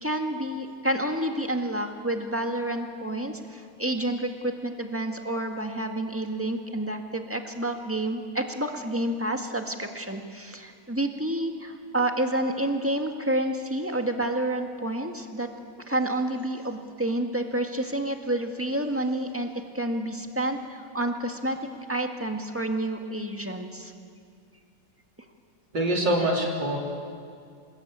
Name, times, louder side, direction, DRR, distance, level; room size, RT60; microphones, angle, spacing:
voice 1, 0.0-15.5 15.9-19.5 19.7-21.6 21.9-23.9, right 1 dB, 5° right, 4 dB, 1.7 m, -29 dB
voice 2, 25.7-26.8, right 1 dB, 70° right, -1 dB, 4.3 m, -24 dB
27.5 x 20.5 x 8.9 m, 2.2 s
omnidirectional pair, 2.0 m